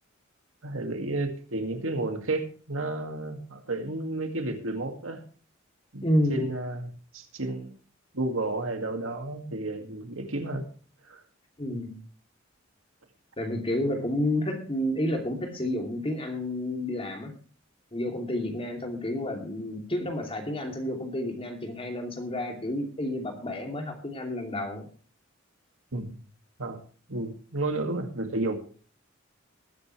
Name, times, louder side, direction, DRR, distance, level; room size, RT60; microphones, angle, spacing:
voice 1, 0.6-5.2 5.9-6.0 6.3-7.7 8.1-10.7 11.1-11.2 25.9-26.2 26.6-26.8 27.1-28.6, right 2 dB, 80° right, 5 dB, 2.2 m, -32 dB
voice 2, 6.0-6.5 11.6-12.0 13.4-17.3 17.9-24.9, left 1 dB, 30° left, 3 dB, 2.8 m, -30 dB
20.0 x 9.6 x 3.2 m, 0.39 s
head